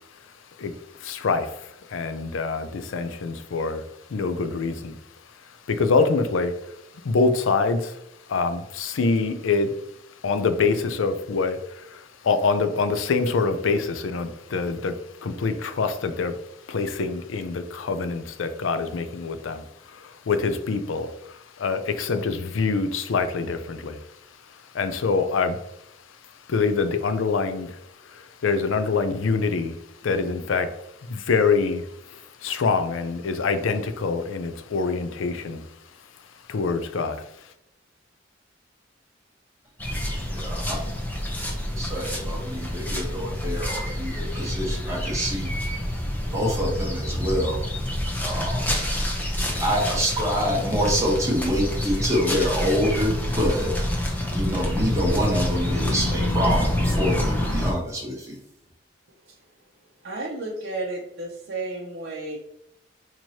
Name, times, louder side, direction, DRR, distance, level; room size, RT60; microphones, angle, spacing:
voice 1, 1.0-3.8 4.1-5.0 5.7-6.7 7.0-8.0 8.3-9.7 10.2-16.4 16.7-24.0 24.7-25.6 26.5-27.8 28.1-29.7 30.0-30.8 31.1-35.6 36.5-37.2, left 4 dB, 85° left, 10 dB, 0.5 m, -25 dB
sound 1, 39.8-57.7, left 1 dB, 10° left, 0.7 m, -27 dB
voice 2, 40.3-40.9 41.7-47.7 48.2-48.7 49.6-53.7 54.3-58.4, equal, 15° right, -3 dB, 1.1 m, -26 dB
voice 3, 60.0-62.4, right 2 dB, 55° right, -4 dB, 0.6 m, -32 dB
4.5 x 2.9 x 2.8 m, 0.82 s
head